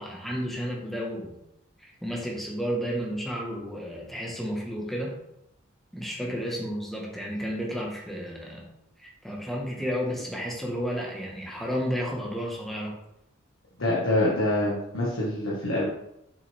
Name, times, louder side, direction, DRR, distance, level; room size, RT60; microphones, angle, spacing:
voice 1, 0.0-1.4 1.8-5.1 5.9-8.7 9.0-13.0, equal, ahead, -2 dB, 1.5 m, -32 dB
voice 2, 13.8-15.8, left 1 dB, 65° left, -6 dB, 1.8 m, -25 dB
7.2 x 6.1 x 3.6 m, 0.83 s
head